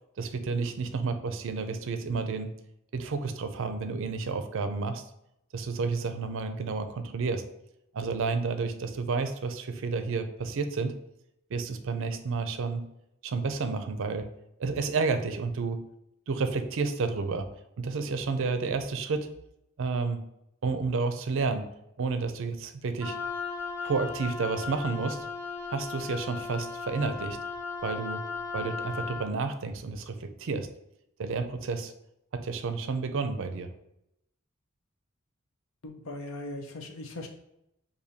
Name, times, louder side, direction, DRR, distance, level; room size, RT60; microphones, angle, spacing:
voice 1, 0.2-2.5 2.9-5.0 5.5-7.4 7.9-10.9 11.5-12.8 13.2-14.3 14.6-15.8 16.3-17.5 17.8-19.3 19.8-20.2 20.6-21.7 22.0-23.2 23.8-25.3 25.7-27.4 27.8-28.2 28.5-30.7 31.2-31.9 32.3-33.7, right 4 dB, 65° right, 8 dB, 0.4 m, -30 dB
Wind instrument woodwind instrument, 23.0-29.3, left 5 dB, 10° right, 0.8 m, -36 dB
voice 2, 35.8-37.3, left 2 dB, 70° left, 3 dB, 0.7 m, -39 dB
6.6 x 2.6 x 2.7 m, 0.81 s
head